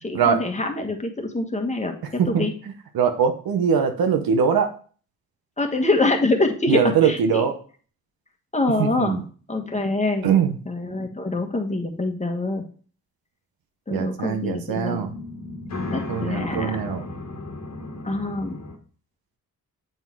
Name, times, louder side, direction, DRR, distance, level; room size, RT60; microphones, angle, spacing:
voice 1, 0.0-2.5 5.6-7.5 8.5-9.2 9.5-10.3 10.6-12.6 13.9-15.1 15.9-16.8 18.0-18.6, left 2 dB, 20° left, 4 dB, 1.4 m, -25 dB
voice 2, 2.9-4.7 6.7-7.5 8.8-9.2 10.2-10.5 13.9-15.1 16.1-17.1, right 7 dB, 70° right, 7 dB, 1.1 m, -21 dB
sound 1, 15.1-18.8, left 2 dB, 45° left, 1.5 m, -34 dB
8.0 x 3.7 x 4.6 m, 0.42 s
cardioid pair, 65°, 37 cm